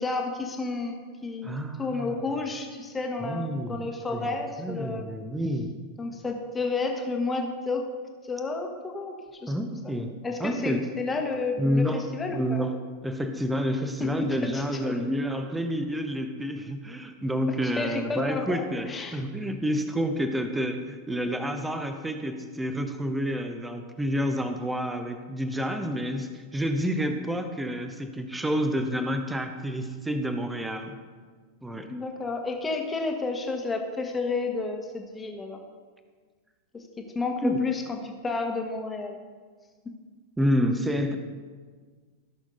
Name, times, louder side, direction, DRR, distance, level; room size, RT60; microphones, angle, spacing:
voice 1, 0.0-1.5 1.8-5.0 6.0-7.8 8.2-9.1 9.4-9.7 10.2-12.6 14.0-14.1 14.4-14.9 17.6-19.2 31.9-35.6 37.1-39.2, left 3 dB, 15° left, 3 dB, 1.4 m, -31 dB
voice 2, 1.4-2.1 3.2-5.7 9.5-10.1 10.4-10.8 11.6-12.7 13.0-31.0 31.6-31.9 37.4-37.6 40.4-41.2, equal, 5° right, 7 dB, 0.9 m, -29 dB
16.0 x 6.2 x 3.9 m, 1.5 s
figure-of-eight pair, 90°, 0 cm